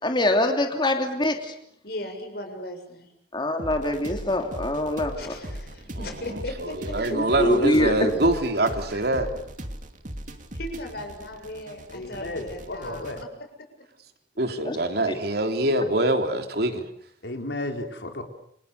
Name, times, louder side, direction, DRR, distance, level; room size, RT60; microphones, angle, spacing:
voice 1, 0.0-1.5 3.3-5.3 7.1-8.1 14.6-14.8 15.1-15.2, left 1 dB, 25° left, 4 dB, 3.0 m, -24 dB
voice 2, 1.8-3.1 5.2-7.2 8.9-9.2 10.6-13.3, left 1 dB, 60° left, 5 dB, 7.1 m, -37 dB
sound 1, 3.6-13.2, right 1 dB, 45° right, 2.8 m, -38 dB
voice 3, 5.9-9.3 14.4-16.8, right 1 dB, 60° right, 5 dB, 3.6 m, -25 dB
voice 4, 11.9-13.2 17.2-18.2, left 2 dB, 80° left, 4 dB, 4.4 m, -33 dB
29.5 x 27.0 x 6.9 m, 0.69 s
head